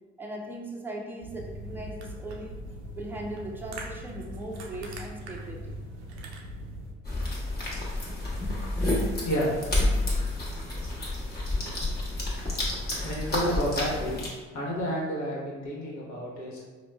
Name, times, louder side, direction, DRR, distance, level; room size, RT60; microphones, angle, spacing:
voice 1, 0.2-2.6 3.0-5.8, right 1 dB, 5° right, -1 dB, 0.6 m, -39 dB
sound 1, 1.2-6.9, right 1 dB, 80° right, 0.5 m, -40 dB
sound 2, 7.0-14.3, left 2 dB, 30° left, 1.2 m, -29 dB
voice 2, 13.0-14.2 14.5-16.6, equal, 60° left, -5 dB, 1.2 m, -30 dB
5.0 x 2.2 x 2.3 m, 1.4 s
hypercardioid pair, 50°, 32 cm